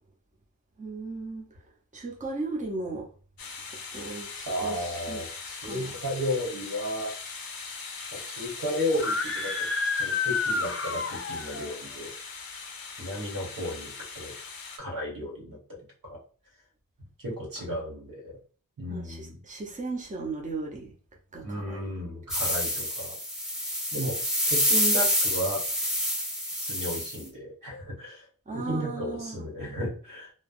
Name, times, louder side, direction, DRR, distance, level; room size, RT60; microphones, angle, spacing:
voice 1, 0.8-1.5 1.9-3.1 3.9-5.2 5.6-6.0 18.9-20.9 21.3-21.9 28.5-29.4, right 3 dB, 20° right, 0 dB, 0.6 m, -36 dB
sound 1, 3.4-14.8, left 5 dB, 90° left, 0.6 m, -41 dB
voice 2, 4.5-7.1 8.1-9.5 10.0-12.1 13.0-14.3 14.8-15.8 16.0-16.2 17.2-18.4 18.8-19.4 21.4-23.2 23.9-24.2 24.5-25.6 26.6-28.3 28.5-30.3, equal, 70° right, -1 dB, 1.2 m, -33 dB
Screaming, 8.9-11.7, left 4 dB, 40° left, 0.4 m, -29 dB
sound 2, 22.3-27.2, equal, ahead, 1.0 m, -27 dB
3.2 x 2.0 x 2.5 m, 0.40 s
wide cardioid pair, 50°, 34 cm